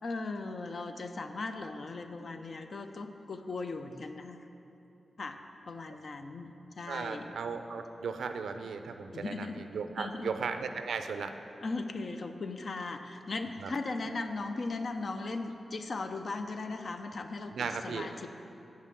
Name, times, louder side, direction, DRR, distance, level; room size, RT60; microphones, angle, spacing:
voice 1, 0.0-4.4 5.2-5.4 5.7-7.3 9.1-9.6 10.0-10.3 11.6-18.3, left 3 dB, 60° left, 7 dB, 0.5 m, -38 dB
voice 2, 6.9-11.4 13.6-13.7 17.5-18.1, right 5 dB, 90° right, 8 dB, 0.4 m, -36 dB
7.8 x 5.7 x 6.1 m, 3.0 s
cardioid pair, 65°, 0 cm